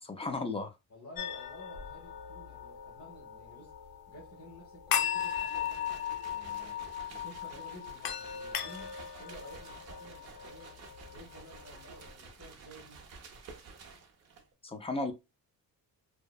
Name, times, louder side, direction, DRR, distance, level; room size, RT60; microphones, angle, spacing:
voice 1, 0.0-0.7 14.6-15.1, left 3 dB, 20° left, 0.3 m, -34 dB
voice 2, 0.9-3.7 4.1-10.8 11.1-13.0, equal, 45° left, 1.1 m, -53 dB
sound 1, 1.2-12.1, left 9 dB, 85° left, 0.5 m, -38 dB
sound 2, 5.2-14.5, right 4 dB, 45° right, 0.6 m, -51 dB
2.7 x 2.0 x 2.2 m
cardioid pair, 135°, 35 cm